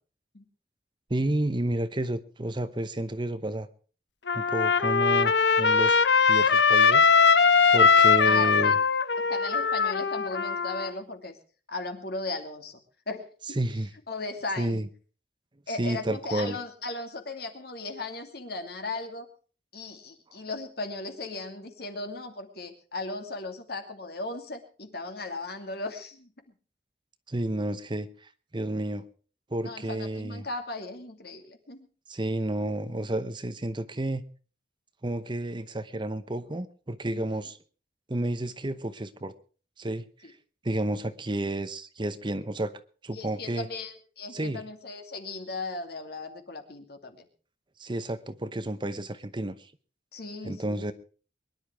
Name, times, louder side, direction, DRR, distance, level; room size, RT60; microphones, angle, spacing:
voice 1, 1.1-3.7 4.3-5.3 5.6-6.0 6.3-7.1 7.7-8.7 13.6-13.9 14.6-14.9 15.8-16.6 27.3-29.0 29.5-30.5 32.1-34.2 35.0-37.6 38.1-39.3 39.8-40.3 40.6-43.7 44.3-44.6 47.8-49.7 50.4-50.9, right 1 dB, 25° right, 12 dB, 0.9 m, -31 dB
Trumpet, 4.3-10.9, left 5 dB, 80° left, 0.9 m, -21 dB
voice 2, 8.2-8.7 9.3-11.4 11.7-12.8 13.1-13.6 14.1-14.8 15.7-19.3 19.7-26.3 29.6-31.9 37.1-37.5 40.2-40.3 43.1-47.3 50.1-50.9, left 2 dB, 60° left, 6 dB, 2.6 m, -37 dB
23.0 x 11.0 x 4.6 m, 0.39 s
head